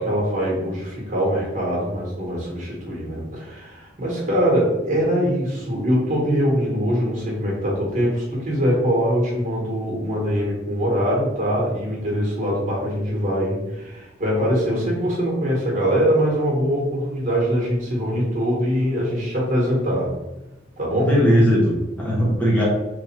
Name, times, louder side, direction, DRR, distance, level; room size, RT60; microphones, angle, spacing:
voice 1, 0.0-20.1 20.8-21.1, equal, 45° right, -3 dB, 1.4 m, -23 dB
voice 2, 21.1-22.7, equal, 10° left, -5 dB, 0.9 m, -18 dB
3.3 x 2.6 x 4.3 m, 1.0 s
head